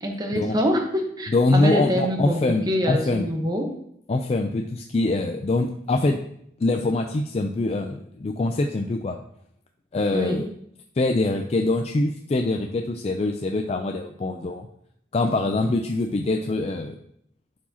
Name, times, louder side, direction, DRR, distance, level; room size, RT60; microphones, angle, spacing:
voice 1, 0.0-3.7 10.1-10.4, equal, 20° right, 3 dB, 0.9 m, -25 dB
voice 2, 1.3-3.2 4.1-6.2 6.6-9.2 9.9-10.5 11.0-14.7 15.1-17.0, left 2 dB, 35° left, 4 dB, 0.4 m, -24 dB
11.0 x 4.7 x 2.8 m, 0.71 s
head